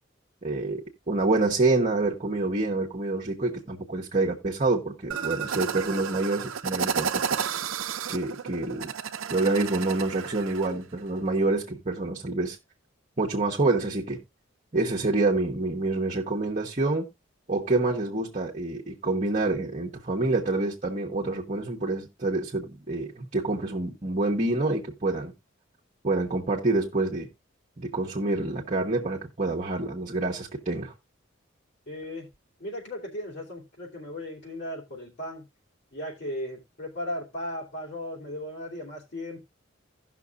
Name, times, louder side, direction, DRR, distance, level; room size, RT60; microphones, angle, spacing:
voice 1, 0.4-7.2 8.1-8.9 9.3-12.6 13.2-14.2 14.7-17.1 17.5-25.3 26.0-27.3 27.8-30.9, right 2 dB, 35° right, 1.2 m, -27 dB
sound 1, 5.1-10.7, right 7 dB, 80° right, 0.6 m, -32 dB
voice 2, 31.9-32.3 32.6-35.4 35.9-39.4, left 1 dB, 60° left, 2.8 m, -36 dB
17.0 x 6.1 x 2.4 m
head